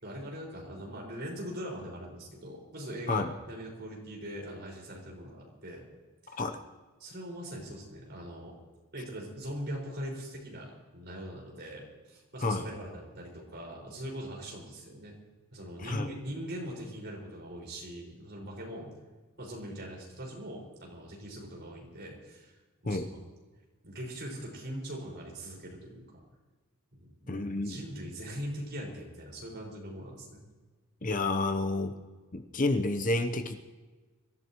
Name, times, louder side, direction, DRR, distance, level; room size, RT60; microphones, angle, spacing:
voice 1, 0.0-5.8 6.2-6.4 7.0-8.5 8.9-15.1 15.5-18.9 19.4-22.5 22.8-23.0 23.8-26.0 26.9-30.4, equal, 50° right, -2 dB, 5.4 m, -41 dB
voice 2, 6.3-6.6 12.4-12.7 15.8-16.1 22.8-23.1 27.3-27.8 31.0-32.0 32.3-33.7, left 2 dB, 35° left, 7 dB, 0.8 m, -30 dB
25.0 x 14.5 x 3.1 m, 1.3 s
head